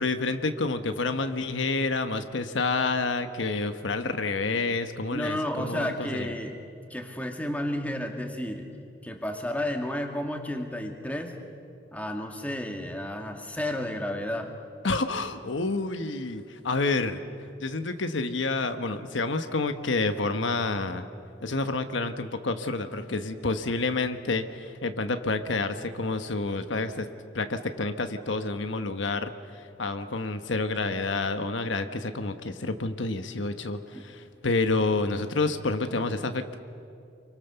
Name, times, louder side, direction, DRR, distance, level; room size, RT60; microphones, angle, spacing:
voice 1, 0.0-6.3 14.8-17.2 17.6-21.1 21.4-27.1 27.3-36.6, left 3 dB, 75° left, 8 dB, 1.2 m, -29 dB
voice 2, 5.1-6.6 6.9-8.7 9.0-11.3 11.9-14.5 33.9-34.0, left 1 dB, 10° left, 3 dB, 2.1 m, -32 dB
29.0 x 24.0 x 7.0 m, 2.5 s
head